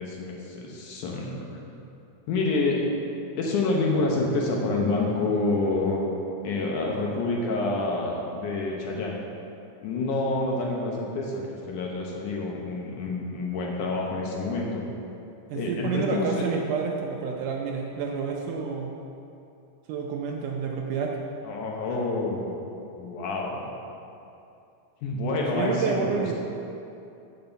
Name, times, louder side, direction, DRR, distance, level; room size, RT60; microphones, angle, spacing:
voice 1, 0.0-1.6 2.3-2.8 3.4-6.0 6.4-9.1 9.8-14.8 15.5-16.5 21.4-22.6 23.0-23.7 25.0-26.3, left 2 dB, 70° left, -1 dB, 2.2 m, -28 dB
voice 2, 15.5-18.9 19.9-21.2 25.5-26.3, right 5 dB, 75° right, 0 dB, 2.0 m, -29 dB
9.2 x 5.4 x 6.9 m, 2.7 s
omnidirectional pair, 4.1 m